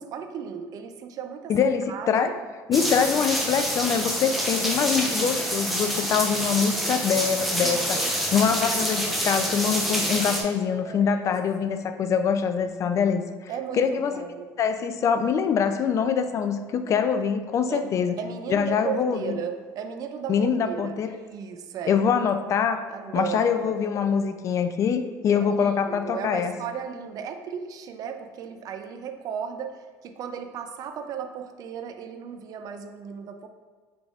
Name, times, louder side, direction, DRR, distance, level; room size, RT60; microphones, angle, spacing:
voice 1, 0.0-2.4 7.6-8.4 10.8-11.3 11.7-11.8 13.5-14.5 17.7-22.0 22.9-23.8 25.4-33.5, right 7 dB, 50° right, 7 dB, 0.4 m, -36 dB
voice 2, 1.5-2.3 2.7-8.0 8.3-13.2 13.8-14.3 14.6-18.1 18.5-19.3 20.3-21.1 21.9-22.8 23.1-26.5, left 7 dB, 40° left, 9 dB, 0.3 m, -24 dB
sound 1, 2.7-10.4, equal, ahead, 0.6 m, -27 dB
5.1 x 3.4 x 2.4 m, 1.5 s
supercardioid pair, 105°, 8 cm